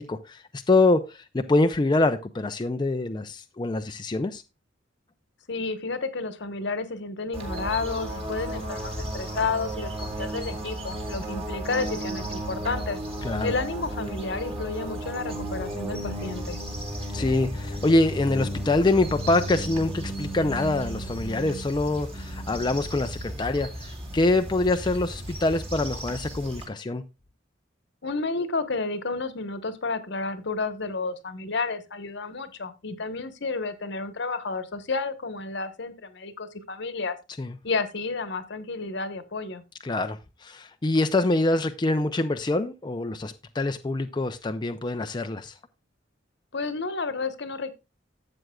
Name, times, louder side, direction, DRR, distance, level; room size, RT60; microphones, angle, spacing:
voice 1, 0.0-4.4 13.2-13.5 17.1-27.0 37.4-37.5 39.8-45.5, left 2 dB, 25° left, 7 dB, 0.5 m, -25 dB
voice 2, 5.5-13.0 13.4-16.6 28.0-37.2 37.6-39.6 46.5-47.7, left 3 dB, 65° left, 11 dB, 1.1 m, -31 dB
sound 1, 7.3-26.6, right 1 dB, 30° right, 2.3 m, -34 dB
12.5 x 7.7 x 2.3 m, 0.26 s
head